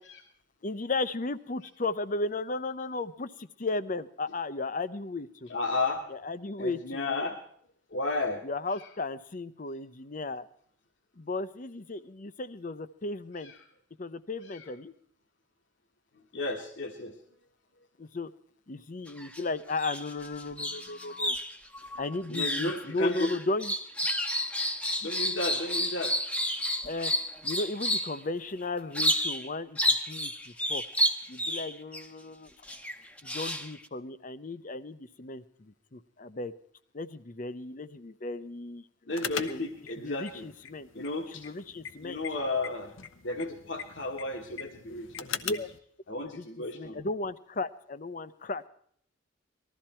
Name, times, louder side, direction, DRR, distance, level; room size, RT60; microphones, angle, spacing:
voice 1, 0.6-5.5 6.2-7.3 8.4-10.5 11.2-13.5 14.0-14.9 18.0-18.3 18.7-21.4 22.0-23.7 26.8-27.1 27.4-29.8 30.1-30.8 31.3-32.5 33.2-36.5 36.9-38.8 39.5-39.6 40.0-40.9 41.3-42.2 45.2-45.7 46.2-46.4 46.7-48.6, left 2 dB, 40° left, 14 dB, 0.7 m, -35 dB
voice 2, 5.5-6.0 6.6-7.4 7.9-8.4 8.7-8.9 13.4-13.6 14.4-14.7 16.3-17.2 22.3-23.3 25.0-26.2 39.1-40.5 40.9-41.5 42.0-42.9 43.2-45.6 46.1-47.0, left 2 dB, 65° left, 2 dB, 1.4 m, -33 dB
sound 1, 19.1-19.4 19.7-28.2 28.9-29.5 29.8-32.0 32.7-33.9, equal, 5° left, 0.9 m, -30 dB
sound 2, 39.1-45.8, left 7 dB, 80° left, 0.9 m, -41 dB
19.5 x 13.5 x 4.4 m, 0.63 s
head